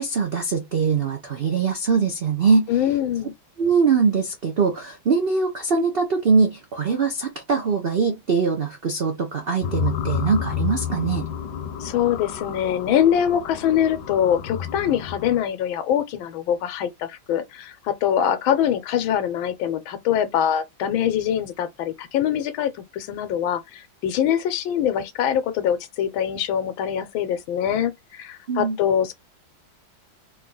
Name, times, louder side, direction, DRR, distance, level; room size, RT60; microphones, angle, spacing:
voice 1, 0.0-2.7 3.6-11.3 28.5-28.8, right 5 dB, 85° right, 0.5 m, -22 dB
voice 2, 2.7-3.3 11.8-29.1, left 9 dB, 85° left, 1.5 m, -23 dB
sound 1, 9.6-15.4, left 8 dB, 70° left, 1.2 m, -30 dB
3.7 x 2.9 x 3.8 m
omnidirectional pair, 2.2 m